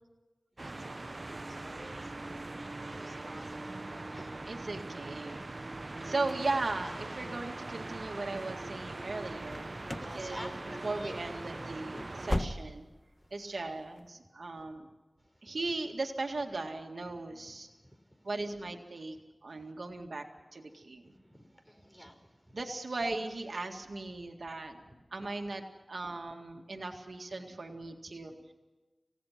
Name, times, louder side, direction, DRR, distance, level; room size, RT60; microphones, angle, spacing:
voice 1, 0.6-2.3 2.6-4.5 5.9-6.0 9.7-11.6 13.2-13.8 15.2-15.6 17.1-18.3 19.5-19.7 20.7-22.6 24.8-25.3, equal, 5° left, 5 dB, 4.8 m, -52 dB
sound 1, 0.6-12.4, right 2 dB, 50° right, 0.8 m, -41 dB
voice 2, 4.5-5.5 6.0-9.7 10.1-10.5 10.8-12.9 13.3-14.9 15.4-17.7 18.2-19.2 19.4-20.3 20.5-21.0 22.5-24.8 25.1-25.6 25.9-28.5, right 3 dB, 85° right, 3 dB, 2.0 m, -37 dB
sound 2, 9.4-10.2 10.4-10.9 11.2-11.3 11.8-13.0 13.3-13.4 14.0-14.1, left 1 dB, 25° left, 1.3 m, -36 dB
28.0 x 17.0 x 5.9 m, 1.2 s
wide cardioid pair, 60°, 0 cm